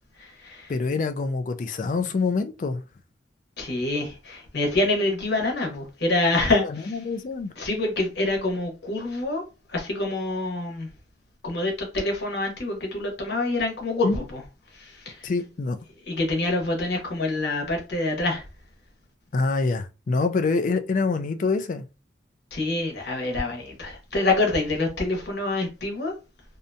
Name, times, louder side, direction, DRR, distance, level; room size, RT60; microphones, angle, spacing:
voice 1, 0.2-0.7 3.6-7.0 7.6-9.4 9.7-10.9 11.4-14.4 14.7-15.3 16.1-18.5 22.5-26.1, left 2 dB, 65° left, 0.9 m, -26 dB
voice 2, 0.7-2.8 6.7-7.5 14.0-14.2 15.2-15.8 19.3-21.8, left 4 dB, 45° left, 0.3 m, -25 dB
2.7 x 2.2 x 2.6 m
head